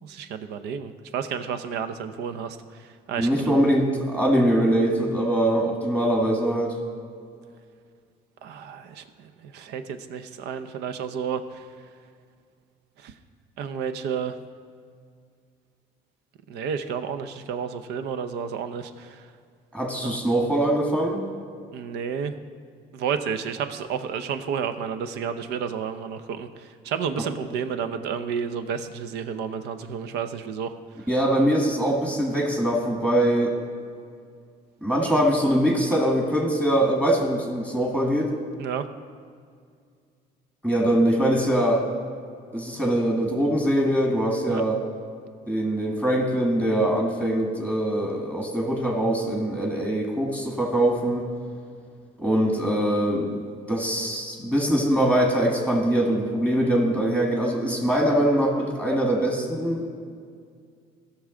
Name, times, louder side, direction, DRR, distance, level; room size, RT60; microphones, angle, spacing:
voice 1, 0.0-3.6 8.4-11.6 13.0-13.1 13.6-14.4 16.5-19.3 20.0-20.2 21.7-22.3 22.9-31.1 38.6-38.9 40.9-41.0 44.5-44.6, right 7 dB, 85° right, 10 dB, 0.7 m, -31 dB
voice 2, 3.2-6.7 19.7-21.2 27.2-27.3 31.1-33.5 34.8-38.3 40.6-41.8 42.5-44.8 45.5-51.3 52.2-53.4 53.7-59.9, right 1 dB, 10° right, -1 dB, 1.5 m, -23 dB
16.5 x 6.2 x 3.8 m, 2.2 s
cardioid pair, 110°, 17 cm